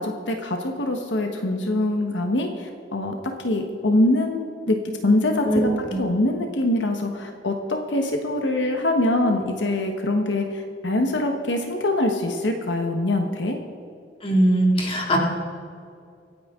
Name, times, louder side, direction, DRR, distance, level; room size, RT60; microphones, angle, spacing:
voice 1, 0.0-3.1 3.4-4.8 5.0-5.5 6.0-13.6, left 1 dB, 80° left, 4 dB, 1.2 m, -23 dB
voice 2, 5.4-6.0 14.2-15.2, right 1 dB, 30° left, -1 dB, 2.3 m, -20 dB
25.5 x 9.5 x 3.7 m, 2.3 s
head